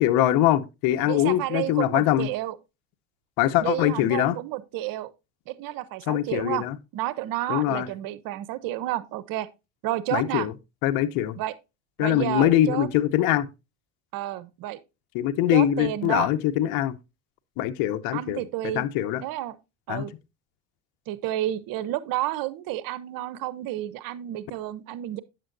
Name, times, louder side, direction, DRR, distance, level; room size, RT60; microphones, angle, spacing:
voice 1, 0.0-2.3 3.4-4.4 6.1-6.8 7.5-7.9 10.1-10.5 10.8-11.4 12.0-13.5 15.1-16.9 17.6-18.4 18.7-19.2 19.9-20.0, left 12 dB, 70° left, 0.8 m, -23 dB
voice 2, 1.0-2.6 3.6-5.1 5.5-6.6 6.9-9.5 9.8-10.5 11.4-11.5 12.0-12.9 14.1-14.8 15.5-16.3 18.1-18.9 19.2-19.6 19.9-20.1 21.1-25.2, right 14 dB, 65° right, 0.7 m, -30 dB
8.9 x 6.7 x 2.5 m
supercardioid pair, 90°, 37 cm